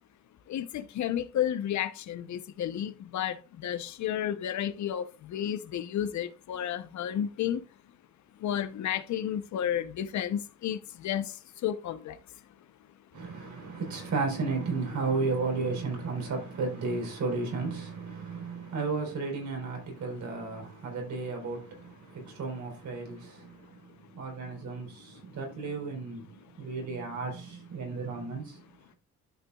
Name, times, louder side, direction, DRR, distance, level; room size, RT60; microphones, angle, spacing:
voice 1, 0.5-7.6 8.4-11.4 11.6-12.2, left 10 dB, 70° left, 0.8 m, -32 dB
voice 2, 13.1-28.6, right 4 dB, 70° right, 3.9 m, -34 dB
12.0 x 6.0 x 2.3 m
cardioid pair, 90°, 30 cm